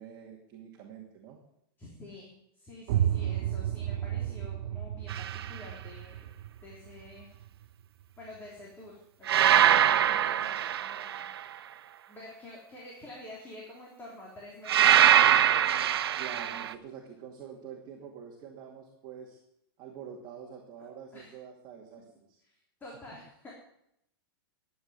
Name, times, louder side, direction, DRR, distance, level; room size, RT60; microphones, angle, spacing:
voice 1, 0.0-1.4 16.2-19.4 19.8-22.4, right 7 dB, 35° right, -1 dB, 2.5 m, -46 dB
voice 2, 1.8-6.3 6.6-7.3 8.2-11.3 12.1-15.5 21.1-21.4 22.4-23.5, left 1 dB, 15° left, -3 dB, 3.5 m, -48 dB
sound 1, 2.9-8.5, right 11 dB, 50° right, 0.8 m, -33 dB
sound 2, 5.1-5.5 9.3-11.4 14.7-16.7, right 10 dB, 85° right, 0.9 m, -23 dB
12.5 x 8.9 x 9.6 m, 0.78 s
supercardioid pair, 150°, 13 cm